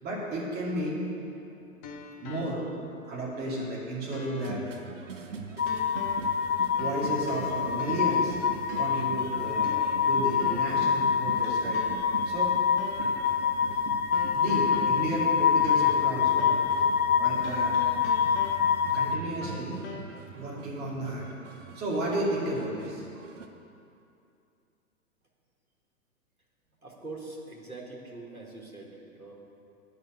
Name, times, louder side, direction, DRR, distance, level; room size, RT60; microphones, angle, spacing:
voice 1, 0.0-1.0 2.2-2.6 3.0-4.6 6.6-8.4 8.8-9.7 10.1-11.8 12.2-12.5 13.0-13.1 14.3-16.5 17.2-17.8 18.9-19.7 20.1-21.2 21.7-23.0, right 1 dB, 20° right, -5 dB, 2.6 m, -33 dB
sound 1, 0.9-2.9 3.3-3.4 4.1-4.6 5.7-6.4 6.8-8.3 8.7-9.2 9.6-10.9 11.4-12.2 12.8-13.2 14.1-16.1 16.4-16.8 17.4-18.9 19.4-20.1, left 4 dB, 15° left, 0.4 m, -43 dB
sound 2, 4.4-23.5, right 6 dB, 60° right, 0.9 m, -42 dB
sound 3, 5.6-19.2, left 7 dB, 85° left, 0.8 m, -26 dB
voice 2, 26.8-29.3, right 2 dB, 85° right, -2 dB, 1.9 m, -43 dB
9.4 x 5.9 x 8.3 m, 2.6 s
figure-of-eight pair, 105°, 42 cm